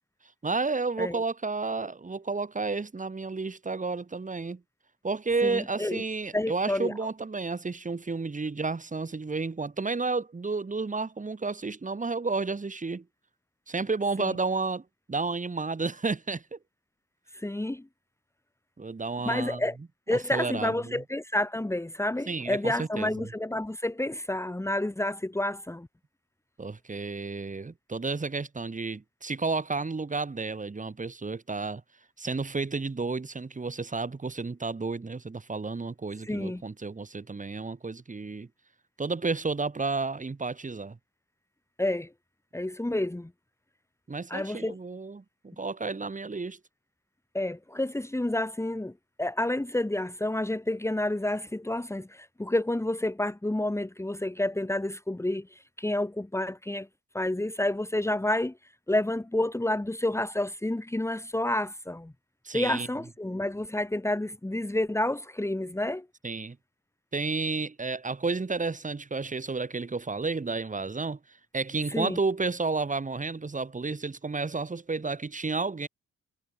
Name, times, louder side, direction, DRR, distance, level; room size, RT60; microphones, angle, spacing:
voice 1, 0.4-4.6 5.0-13.0 13.7-16.6 18.8-19.6 20.1-21.0 22.3-23.3 26.6-31.8 32.2-38.5 39.0-41.0 44.1-46.6 62.5-62.9 66.2-66.6 67.1-71.2 71.5-75.9, right 4 dB, 25° right, 5.2 m, -31 dB
voice 2, 5.4-6.0 6.3-6.9 14.2-14.4 17.3-17.9 19.2-19.8 20.1-25.9 36.2-36.6 41.8-42.1 42.5-43.3 44.3-44.8 47.3-48.9 49.2-56.9 57.1-58.5 58.9-62.1 62.5-66.0 71.9-72.2, left 1 dB, 10° left, 2.9 m, -29 dB
cardioid pair, 90°, 30 cm